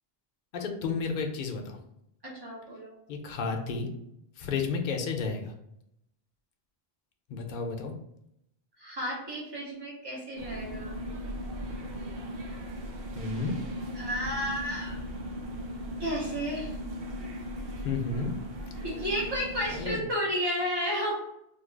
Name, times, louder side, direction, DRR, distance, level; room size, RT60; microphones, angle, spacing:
voice 1, 0.5-1.8 3.1-3.9 4.4-5.5 7.3-7.9 13.2-13.6 17.8-18.3 19.7-20.0, left 4 dB, 60° left, 3 dB, 0.7 m, -32 dB
voice 2, 2.2-2.9 8.8-11.0 14.0-15.0 16.0-16.7 18.8-21.1, equal, 30° right, -5 dB, 0.6 m, -32 dB
sound 1, 10.4-20.0, equal, 70° right, 0.8 m, -38 dB
2.7 x 2.3 x 3.8 m, 0.79 s
omnidirectional pair, 1.1 m